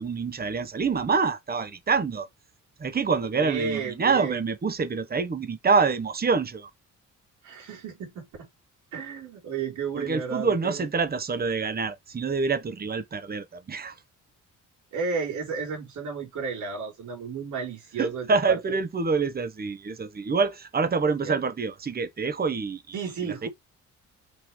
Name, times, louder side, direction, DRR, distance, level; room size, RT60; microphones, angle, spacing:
voice 1, 0.0-2.3 2.8-6.7 9.9-14.0 18.0-23.0 23.4-23.5, right 4 dB, 30° right, 1.3 m, -26 dB
voice 2, 3.4-4.4 7.4-8.5 8.9-10.8 14.9-18.8 21.2-21.4 22.9-23.5, right 5 dB, 75° right, 4.1 m, -33 dB
5.9 x 5.6 x 3.3 m
cardioid pair, 90°, 30 cm